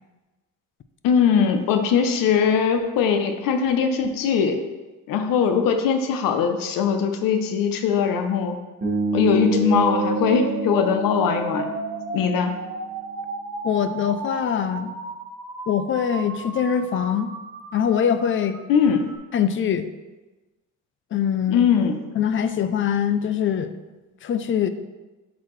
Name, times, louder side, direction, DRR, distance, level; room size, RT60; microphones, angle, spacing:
voice 1, 1.0-4.6 5.1-8.6 9.1-11.7 12.1-12.5 18.7-19.1 21.5-22.0, left 7 dB, 85° left, 6 dB, 0.7 m, -21 dB
Bass guitar, 8.8-12.9, right 3 dB, 25° right, 1.6 m, -28 dB
sound 1, 9.2-19.2, right 4 dB, 90° right, 1.1 m, -33 dB
voice 2, 13.6-14.9 15.7-17.3 17.7-18.6 19.3-19.9 21.1-21.7 22.2-23.7 24.2-24.7, left 8 dB, 40° left, 11 dB, 0.4 m, -23 dB
8.5 x 4.1 x 3.1 m, 1.2 s
cardioid pair, 130°, 33 cm